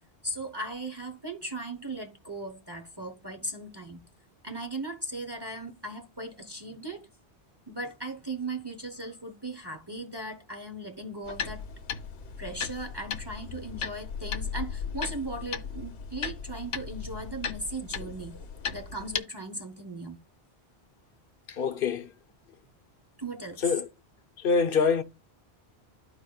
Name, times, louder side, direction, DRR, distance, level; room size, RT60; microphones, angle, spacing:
voice 1, 0.2-4.0 4.4-7.1 7.7-11.6 12.4-18.5 18.7-20.2 23.2-23.6, right 2 dB, 25° right, 0.9 m, -38 dB
sound 1, 11.2-19.2, left 6 dB, 85° left, 1.0 m, -36 dB
voice 2, 21.5-22.1 23.6-23.9 24.4-25.0, left 5 dB, 60° left, 0.8 m, -25 dB
13.5 x 4.8 x 2.3 m
omnidirectional pair, 1.1 m